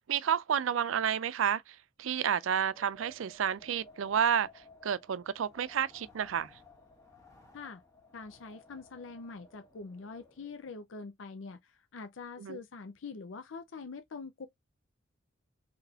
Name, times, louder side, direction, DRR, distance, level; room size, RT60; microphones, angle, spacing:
voice 1, 0.0-4.5 4.8-6.5 12.4-12.6, right 8 dB, 85° right, 0.4 m, -30 dB
Wind, 2.2-10.7, equal, 15° left, 1.4 m, -58 dB
voice 2, 8.1-14.5, left 4 dB, 70° left, 0.5 m, -44 dB
4.0 x 3.1 x 2.7 m
head